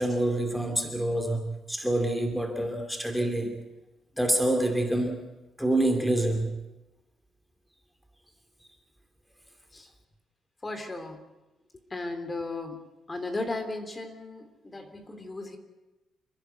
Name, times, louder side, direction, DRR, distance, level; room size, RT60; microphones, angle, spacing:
voice 1, 0.0-3.7 4.2-5.3 5.6-6.6, right 1 dB, ahead, 4 dB, 2.7 m, -27 dB
voice 2, 10.6-11.2 11.7-12.8 13.1-15.6, left 2 dB, 25° left, 6 dB, 3.2 m, -36 dB
29.5 x 10.5 x 9.4 m, 1.0 s
cardioid pair, 90°, 0 cm